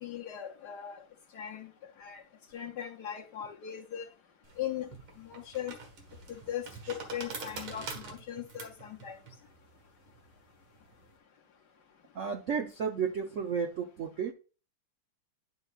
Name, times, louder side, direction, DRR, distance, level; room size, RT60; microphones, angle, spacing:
voice 1, 0.0-1.0 1.3-1.7 2.0-2.2 2.5-4.1 4.6-4.9 5.2-5.7 6.3-9.2, left 10 dB, 65° left, 1.1 m, -39 dB
sound 1, 4.4-11.1, right 4 dB, 90° right, 2.5 m, -45 dB
voice 2, 12.1-14.3, right 6 dB, 70° right, 0.7 m, -32 dB
11.0 x 5.6 x 2.4 m
omnidirectional pair, 2.3 m